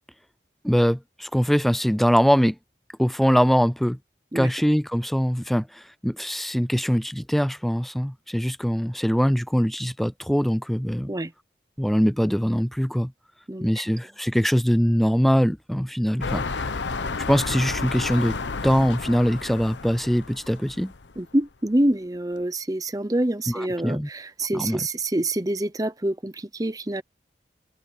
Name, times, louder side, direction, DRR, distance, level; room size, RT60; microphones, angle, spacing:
voice 1, 0.6-2.6 3.0-4.0 4.4-11.1 11.8-13.1 13.6-16.7 17.3-18.4 18.6-20.9 23.5-24.1 24.5-24.8, equal, ahead, 0.4 m, -22 dB
sound 1, 16.2-21.2 21.8-21.9, left 4 dB, 85° left, 0.9 m, -31 dB
voice 2, 21.2-27.0, right 1 dB, 20° right, 0.8 m, -26 dB
open air
head